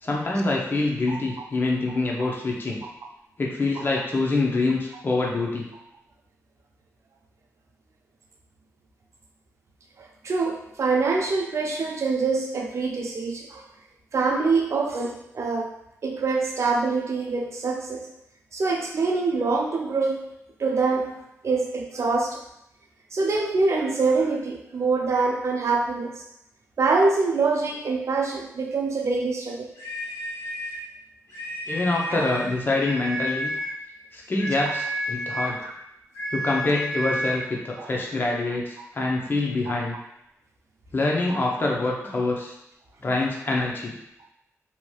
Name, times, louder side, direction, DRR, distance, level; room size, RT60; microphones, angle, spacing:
voice 1, 0.0-2.8 3.4-5.7 31.7-33.5 34.1-35.7 36.3-40.0 40.9-42.5 43.0-43.9, left 2 dB, 40° left, -2 dB, 0.6 m, -25 dB
voice 2, 10.0-13.6 14.1-15.7 16.0-18.0 18.5-20.2 20.6-22.4 23.1-26.1 26.8-29.7 32.1-32.3 35.6-35.7 37.8-37.9 39.7-39.8, right 4 dB, 55° right, 1 dB, 0.5 m, -25 dB
sound 1, 29.8-30.9 31.3-32.5 32.8-33.8 34.4-35.6 36.1-37.5, equal, 75° left, 1.0 m, -31 dB
3.0 x 2.8 x 2.3 m, 0.82 s
wide cardioid pair, 95°, 6 cm